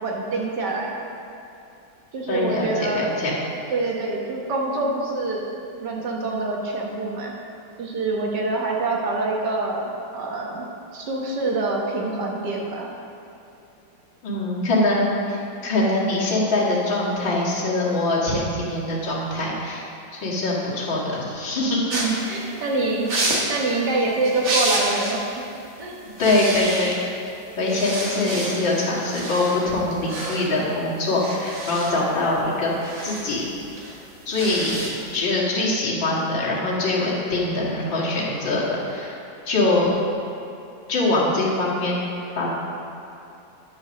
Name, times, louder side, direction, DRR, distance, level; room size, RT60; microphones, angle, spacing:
voice 1, 0.0-0.9 2.1-3.0 3.7-7.3 7.8-10.7 10.9-12.9 21.9-25.4 25.8-26.0, right 2 dB, 65° right, -1 dB, 1.8 m, -26 dB
voice 2, 2.3-3.4 14.2-19.8 20.1-21.8 26.2-27.0 27.6-32.7 33.0-33.5 34.3-39.2 39.5-39.9 40.9-42.1 42.3-42.6, left 2 dB, 80° left, -6 dB, 2.6 m, -23 dB
sound 1, 21.9-25.2 25.6-25.8 26.1-27.2 27.6-35.2, right 2 dB, 45° right, 1.3 m, -30 dB
9.6 x 5.3 x 6.3 m, 2.7 s
omnidirectional pair, 2.0 m